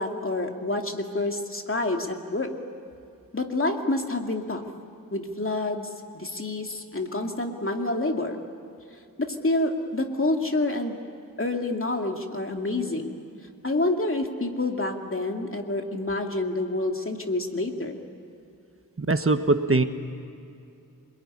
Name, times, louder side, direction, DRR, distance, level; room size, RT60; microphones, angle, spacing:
voice 1, 0.0-2.5 3.3-4.6 5.1-8.4 9.2-11.0 11.4-13.1 13.6-18.0, left 2 dB, 35° left, 3 dB, 2.5 m, -28 dB
voice 2, 19.0-19.8, right 3 dB, 40° right, 8 dB, 1.2 m, -21 dB
27.0 x 22.0 x 9.9 m, 2.5 s
wide cardioid pair, 75°, 35 cm